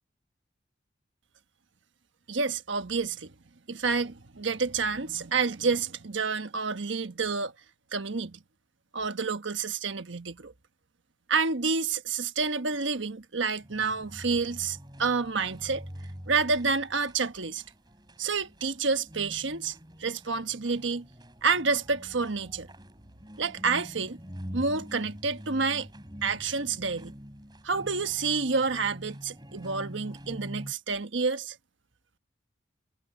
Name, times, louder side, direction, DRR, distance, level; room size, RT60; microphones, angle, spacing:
voice 1, 2.3-3.3 3.7-7.5 7.9-8.4 8.9-10.5 11.3-15.9 16.3-17.6 18.2-21.1 21.4-22.7 23.4-24.2 24.5-25.9 26.2-27.1 27.6-31.6, right 4 dB, 80° right, 1.3 m, -29 dB
sound 1, 13.6-30.7, equal, 20° right, 4.1 m, -45 dB
head